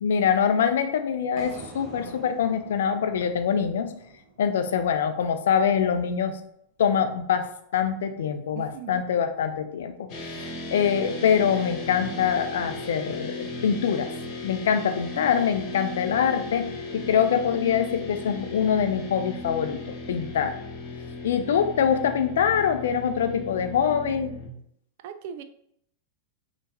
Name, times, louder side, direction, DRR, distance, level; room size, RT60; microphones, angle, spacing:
voice 1, 0.0-3.9 4.4-6.4 6.8-10.1 10.4-14.1 14.4-16.7 16.9-20.6 21.2-24.3, left 7 dB, 60° left, 9 dB, 0.4 m, -24 dB
sound 1, 1.4-5.5, right 3 dB, 30° right, 0.7 m, -46 dB
voice 2, 8.5-9.0 25.0-25.4, right 8 dB, 50° right, 10 dB, 0.3 m, -38 dB
sound 2, 10.1-24.5, left 2 dB, 40° left, 1.1 m, -36 dB
5.5 x 3.0 x 2.6 m, 0.72 s
figure-of-eight pair, 90°, 0 cm